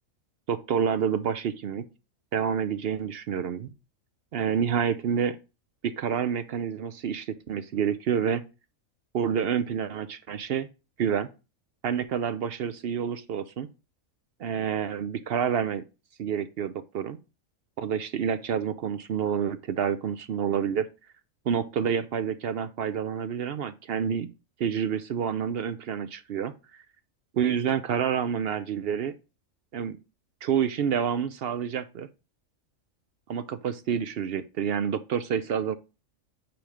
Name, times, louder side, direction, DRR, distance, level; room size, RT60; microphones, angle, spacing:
voice 1, 0.5-1.9 2.3-3.7 4.3-5.4 5.8-8.4 9.1-10.7 11.0-11.3 11.8-13.7 14.4-15.8 16.2-17.2 17.8-20.9 21.5-24.3 24.6-26.8 27.3-29.1 29.7-30.0 30.4-32.1 33.3-35.7, right 8 dB, 60° right, 0.6 m, -28 dB
9.0 x 3.2 x 5.0 m
omnidirectional pair, 1.4 m